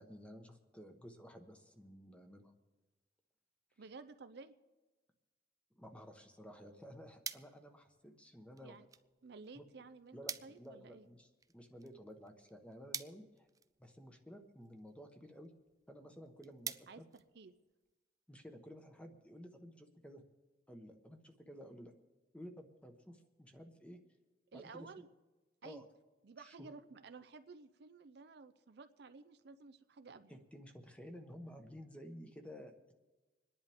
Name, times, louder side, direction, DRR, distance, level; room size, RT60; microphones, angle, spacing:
voice 1, 0.0-2.5 5.7-8.8 9.5-9.6 10.1-13.5 13.8-15.5 15.9-17.1 18.3-20.2 20.7-21.9 22.3-24.0 24.5-24.9 25.6-25.8 26.4-26.7 30.3-32.9, equal, 5° left, 5 dB, 1.2 m, -53 dB
voice 2, 3.8-4.5 8.6-8.9 9.2-11.1 16.9-17.5 24.5-25.1 25.6-25.8 26.2-30.3, right 4 dB, 65° right, 11 dB, 0.6 m, -54 dB
sound 1, 6.6-18.0, right 7 dB, 20° right, 0.3 m, -51 dB
26.5 x 10.5 x 3.5 m, 1.2 s
head